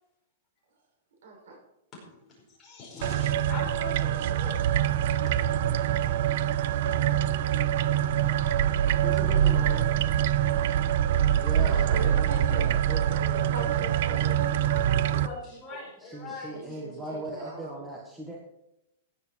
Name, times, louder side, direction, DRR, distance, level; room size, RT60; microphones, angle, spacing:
voice 1, 1.2-1.6 11.5-12.7 13.5-15.9 16.5-17.8, right 3 dB, 70° right, 1 dB, 6.3 m, -40 dB
voice 2, 1.9-4.6 11.7-12.1 15.2-16.6, left 3 dB, 15° left, -4 dB, 4.9 m, -42 dB
sound 1, 3.0-15.3, right 10 dB, 50° right, 0.5 m, -25 dB
voice 3, 9.0-10.0 11.3-14.4 16.0-18.4, right 1 dB, 5° right, -2 dB, 1.5 m, -39 dB
15.5 x 9.7 x 4.5 m, 0.84 s
supercardioid pair, 170°, 0 cm